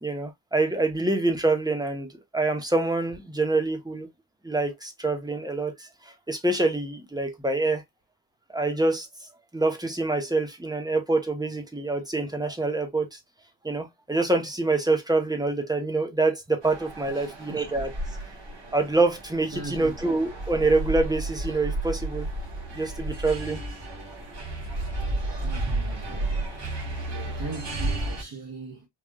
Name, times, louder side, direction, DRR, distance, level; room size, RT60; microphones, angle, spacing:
voice 1, 0.0-4.1 4.4-7.8 8.5-9.1 9.5-13.2 13.6-17.9 18.7-22.3 22.7-23.6, right 2 dB, 10° right, 1.0 m, -26 dB
sound 1, 16.6-28.2, right 2 dB, 70° right, 2.3 m, -32 dB
voice 2, 17.1-17.7 19.5-19.9 25.4-26.4 27.1-28.9, right 3 dB, 50° right, 1.6 m, -39 dB
4.8 x 2.6 x 2.3 m
cardioid pair, 80°, 44 cm